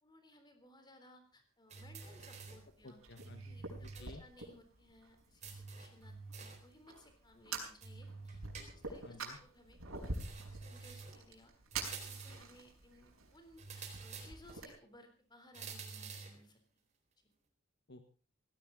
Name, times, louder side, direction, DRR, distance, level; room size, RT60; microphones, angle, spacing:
voice 1, 0.0-3.0 3.5-8.4 8.7-10.2 10.5-11.5 12.0-16.6, left 1 dB, 20° left, 6 dB, 3.7 m, -61 dB
sound 1, 1.7-2.7 3.2-4.1 4.4-4.5 5.4-6.7 7.8-9.1 10.1-11.2 11.7-12.5 13.6-14.6 15.5-16.4, right 4 dB, 35° right, 4.2 m, -49 dB
Fire, 1.7-14.7, right 3 dB, 85° right, 5.3 m, -48 dB
voice 2, 2.8-4.2 9.0-9.4 17.9-18.0, left 2 dB, 55° left, 6 dB, 1.7 m, -54 dB
17.5 x 17.0 x 4.0 m, 0.36 s
head